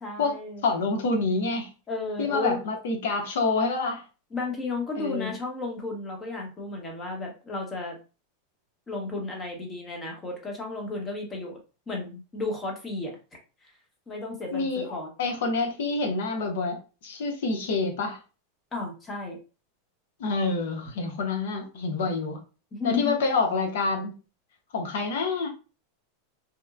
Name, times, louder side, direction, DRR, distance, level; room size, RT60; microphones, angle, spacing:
voice 1, 0.0-0.6 1.9-2.6 4.3-8.0 8.9-11.6 11.9-13.1 14.1-15.1 18.7-19.4 22.7-23.2, left 3 dB, 20° left, 1 dB, 0.9 m, -33 dB
voice 2, 0.6-1.7 2.2-4.0 5.0-5.3 14.5-18.2 20.2-22.4 22.8-24.2 24.7-25.5, left 3 dB, 75° left, 3 dB, 0.7 m, -27 dB
2.9 x 2.1 x 2.3 m, 0.33 s
supercardioid pair, 140°, 0 cm